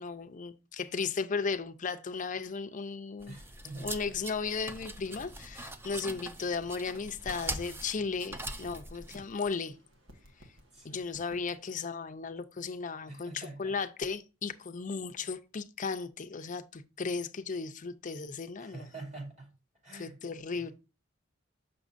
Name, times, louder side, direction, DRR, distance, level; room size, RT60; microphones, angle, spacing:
voice 1, 0.0-3.4 3.8-9.8 10.8-18.9 19.9-20.7, left 5 dB, 40° left, 0.6 m, -35 dB
sound 1, 3.2-9.2, right 1 dB, 10° right, 0.5 m, -42 dB
voice 2, 3.2-4.2 10.7-11.1 13.1-13.7 18.6-19.5 19.8-20.2 20.5-20.7, right 2 dB, 35° right, 2.6 m, -46 dB
sound 2, 6.0-11.6, equal, 70° right, 1.5 m, -58 dB
6.2 x 6.1 x 2.5 m
head